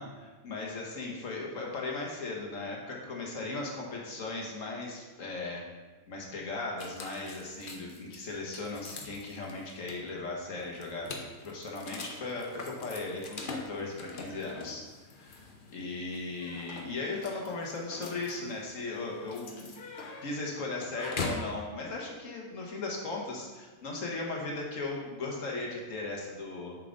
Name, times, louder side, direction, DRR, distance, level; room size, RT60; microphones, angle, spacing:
voice 1, 0.0-5.7 6.1-14.8 15.1-15.4 15.7-19.7 20.2-26.8, left 3 dB, 60° left, -1 dB, 1.7 m, -37 dB
sound 1, 6.8-21.5, left 3 dB, 45° left, 0.9 m, -43 dB
6.9 x 6.6 x 3.9 m, 1.3 s
omnidirectional pair, 1.5 m